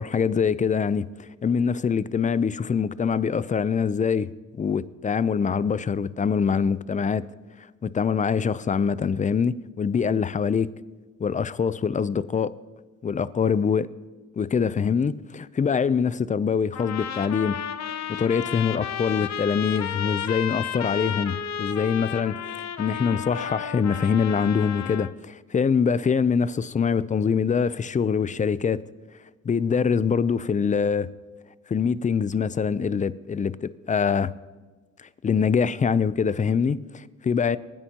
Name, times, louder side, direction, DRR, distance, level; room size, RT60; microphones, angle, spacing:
voice 1, 0.0-7.2 7.8-10.7 11.2-12.5 13.0-13.9 14.3-17.6 18.1-28.8 29.4-31.1 31.7-34.3 35.2-37.6, left 6 dB, 25° left, 0.5 m, -24 dB
sound 1, 16.7-25.1, left 9 dB, 65° left, 0.8 m, -32 dB
24.5 x 9.9 x 2.9 m
cardioid pair, 90°, 30 cm